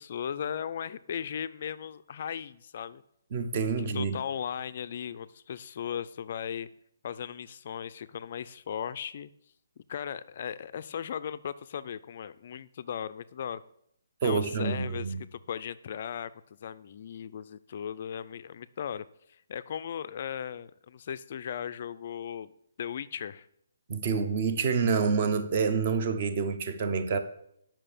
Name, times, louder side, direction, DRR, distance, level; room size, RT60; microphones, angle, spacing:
voice 1, 0.0-3.0 3.8-6.7 7.0-9.3 9.8-13.6 14.2-16.3 16.6-19.1 19.5-22.5 22.8-23.5, left 8 dB, 35° left, 0.3 m, -37 dB
voice 2, 3.3-4.2 14.2-15.2 23.9-27.2, right 5 dB, 25° right, 0.7 m, -27 dB
8.9 x 5.9 x 6.6 m
hypercardioid pair, 180°, 0 cm